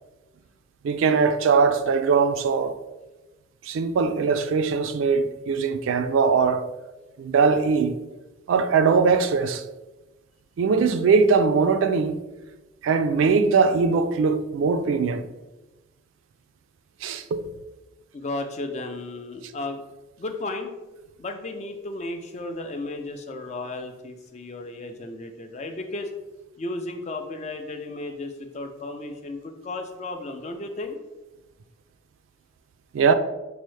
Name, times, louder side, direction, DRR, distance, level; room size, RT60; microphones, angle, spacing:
voice 1, 0.8-2.8 3.7-6.7 7.2-8.0 8.5-9.6 10.6-12.2 12.8-15.3 17.0-17.4 32.9-33.1, right 5 dB, 80° right, 0.3 m, -21 dB
voice 2, 18.1-19.9 20.2-20.7 21.2-26.1 26.6-31.0, left 2 dB, 35° left, 0.3 m, -34 dB
5.4 x 2.0 x 3.1 m
head